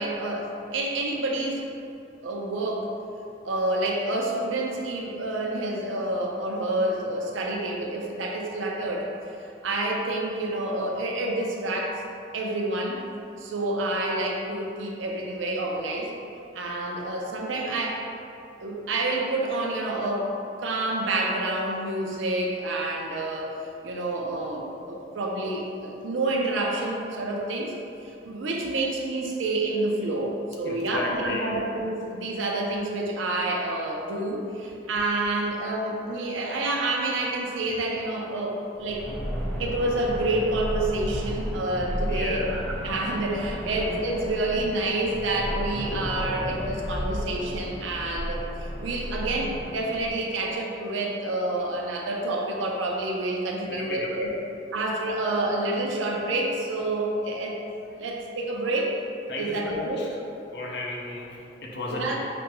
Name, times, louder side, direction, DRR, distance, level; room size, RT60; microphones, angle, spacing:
voice 1, 0.0-1.6 2.2-2.9 3.4-9.1 9.6-12.0 12.3-13.0 13.4-16.1 16.5-18.0 18.6-20.3 20.6-23.6 23.8-27.7 28.0-39.0 39.6-54.3 54.7-57.6 58.0-58.9 59.4-60.0 61.9-62.2, right 2 dB, 85° right, -1 dB, 0.5 m, -28 dB
voice 2, 30.6-31.6 42.1-42.5 48.0-48.1 53.6-54.4 57.8-58.1 59.3-60.2 60.5-62.2, left 2 dB, 60° left, -2 dB, 0.5 m, -34 dB
sound 1, 38.8-50.1, equal, 5° left, 0.5 m, -33 dB
5.0 x 2.2 x 2.9 m, 2.7 s
head